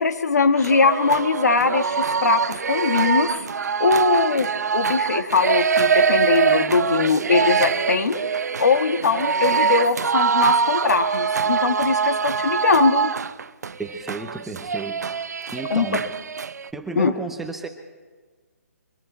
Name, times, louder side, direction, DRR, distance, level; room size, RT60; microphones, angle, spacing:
voice 1, 0.0-3.4 3.8-8.2 8.6-13.1 15.7-15.9 16.9-17.1, left 4 dB, 75° left, 8 dB, 1.6 m, -21 dB
sound 1, 0.6-16.7, right 6 dB, 80° right, 0.7 m, -23 dB
voice 2, 13.8-15.1 15.5-16.1 16.7-17.7, right 3 dB, 5° right, 5 dB, 0.6 m, -33 dB
24.0 x 14.0 x 4.2 m, 1.4 s
hypercardioid pair, 165°, 9 cm